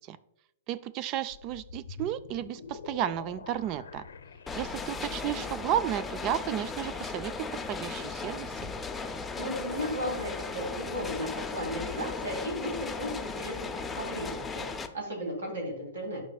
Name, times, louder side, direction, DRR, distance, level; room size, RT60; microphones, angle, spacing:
voice 1, 0.7-4.1 4.5-8.5, right 11 dB, 40° right, 16 dB, 0.3 m, -33 dB
sound 1, 1.3-5.3, left 5 dB, 75° left, 0.6 m, -46 dB
sound 2, 4.5-14.9, left 4 dB, 10° left, 0.5 m, -37 dB
voice 2, 9.4-14.6 14.9-16.2, equal, 80° right, 0 dB, 2.8 m, -35 dB
11.0 x 4.9 x 2.3 m, 0.79 s
hypercardioid pair, 115°, 0 cm